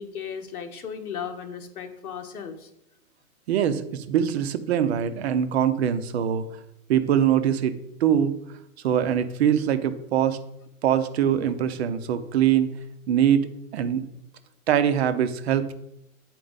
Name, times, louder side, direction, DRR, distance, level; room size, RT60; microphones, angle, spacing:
voice 1, 0.0-2.7, left 7 dB, 80° left, 6 dB, 1.3 m, -36 dB
voice 2, 3.5-6.5 6.9-8.3 8.8-10.4 10.8-12.7 13.1-14.0 14.7-15.7, right 9 dB, 45° right, 10 dB, 0.7 m, -23 dB
8.7 x 4.5 x 3.9 m, 0.81 s
hypercardioid pair, 140°, 44 cm